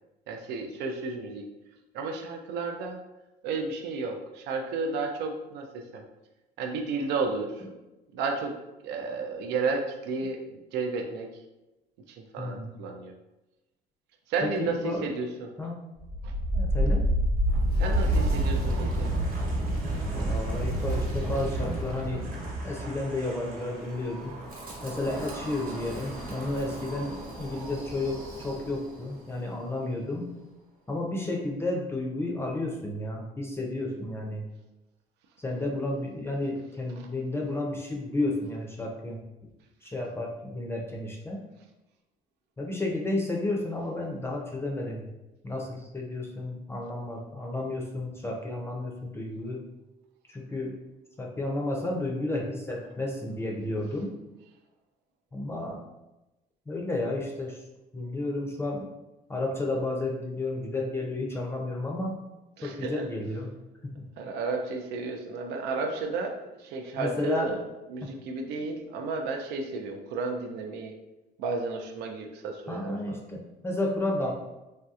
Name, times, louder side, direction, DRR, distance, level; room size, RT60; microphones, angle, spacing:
voice 1, 0.3-1.5 1.9-3.0 3.4-6.0 6.6-7.6 8.1-8.6 8.8-11.3 12.2-13.1 14.3-15.5 16.2-16.3 17.8-19.1 62.6-63.1 64.2-67.6 67.9-70.9 71.4-73.0, right 4 dB, 85° right, 4 dB, 0.4 m, -32 dB
voice 2, 12.4-12.8 14.4-15.1 15.6-15.8 16.5-17.0 20.2-22.2 22.6-24.3 24.8-30.3 30.9-34.5 35.4-39.2 39.8-41.4 42.6-45.1 45.4-49.6 50.3-50.7 51.2-54.1 55.3-55.8 56.7-57.6 57.9-58.9 59.3-62.2 62.6-63.5 63.8-64.1 67.0-67.6 68.0-68.1 72.7-74.3, left 2 dB, 15° left, -1 dB, 0.4 m, -32 dB
Wind, 16.0-29.0, right 1 dB, 60° right, 1.0 m, -30 dB
3.2 x 2.7 x 2.3 m, 1.0 s
cardioid pair, 110°, 17 cm